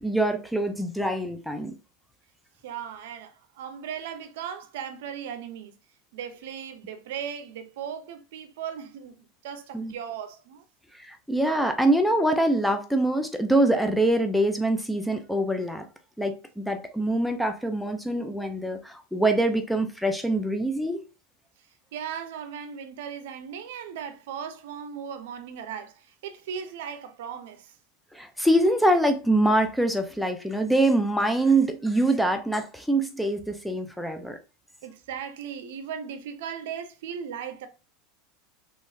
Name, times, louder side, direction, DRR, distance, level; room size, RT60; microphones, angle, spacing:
voice 1, 0.0-1.7 9.7-9.9 10.9-15.8 16.2-21.0 28.1-34.4, right 1 dB, ahead, 0.5 m, -24 dB
voice 2, 2.6-5.8 6.1-10.6 21.9-27.7 34.8-37.7, right 8 dB, 75° right, 0.6 m, -37 dB
3.8 x 3.0 x 2.7 m
supercardioid pair, 130°, 0 cm